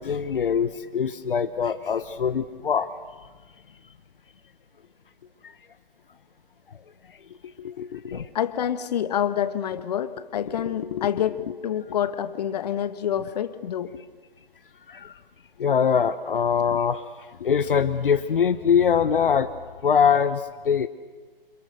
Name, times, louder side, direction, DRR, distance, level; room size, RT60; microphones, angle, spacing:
voice 1, 0.0-2.9 5.4-5.5 8.1-8.3 14.9-15.1 15.6-17.1 17.4-19.5 19.8-20.9, left 7 dB, 65° left, 10 dB, 1.2 m, -23 dB
voice 2, 7.6-14.0 15.6-15.7 17.4-17.5, left 9 dB, 45° left, 11 dB, 1.5 m, -28 dB
29.0 x 26.5 x 6.7 m, 1.4 s
figure-of-eight pair, 140°, 29 cm